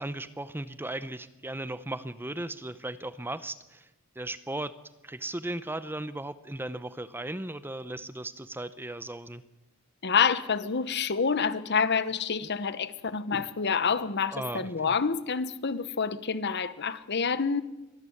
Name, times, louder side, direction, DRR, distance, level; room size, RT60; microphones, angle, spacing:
voice 1, 0.0-3.9 4.2-4.7 5.0-9.4 14.3-14.9, right 1 dB, 10° right, 14 dB, 0.7 m, -36 dB
voice 2, 10.0-17.6, left 6 dB, 55° left, 15 dB, 1.0 m, -28 dB
23.5 x 14.0 x 9.7 m, 1.0 s
head